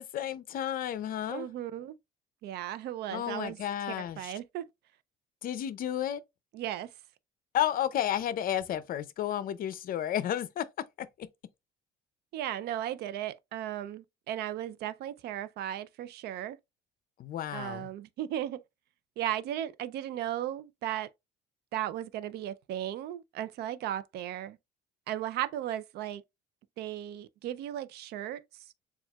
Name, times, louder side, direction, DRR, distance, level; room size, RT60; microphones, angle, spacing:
voice 1, 0.0-1.5 3.1-4.3 5.4-6.2 7.5-10.6 11.0-11.1 17.2-17.9, left 11 dB, 55° left, 0.5 m, -32 dB
voice 2, 1.3-2.0 2.4-3.6 4.0-4.7 6.5-6.9 12.3-16.6 17.5-18.6 19.2-21.1 21.7-24.6 25.1-26.2 26.8-28.6, right 12 dB, 75° right, 0.5 m, -36 dB
7.0 x 2.4 x 2.3 m
cardioid pair, 110°, 17 cm